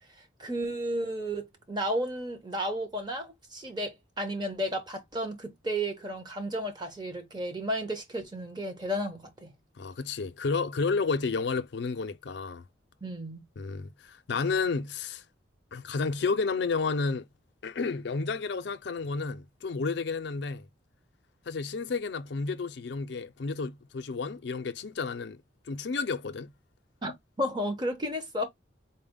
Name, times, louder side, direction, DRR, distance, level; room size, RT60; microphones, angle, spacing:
voice 1, 0.4-9.5 13.0-13.5 27.0-27.1 27.4-28.4, equal, 20° right, 0.8 m, -33 dB
voice 2, 9.8-12.6 13.6-15.2 15.7-17.3 17.6-20.7 21.5-25.4 25.7-26.5, left 4 dB, 60° left, 0.4 m, -31 dB
4.1 x 2.1 x 3.6 m
head